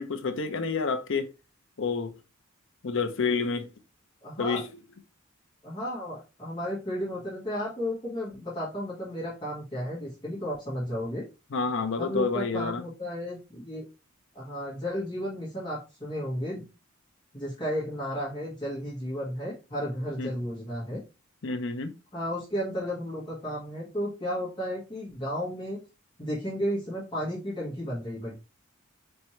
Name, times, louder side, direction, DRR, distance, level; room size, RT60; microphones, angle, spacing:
voice 1, 0.0-1.3 1.8-2.1 2.8-3.7 4.4-4.8 11.5-12.8 20.2-20.3 21.4-21.9, left 4 dB, 60° left, 0.6 m, -29 dB
voice 2, 4.2-4.6 5.6-11.2 12.0-13.8 14.4-16.6 17.3-21.0 22.1-25.8 26.2-28.3, equal, 20° left, 1.7 m, -33 dB
4.4 x 3.3 x 3.1 m
head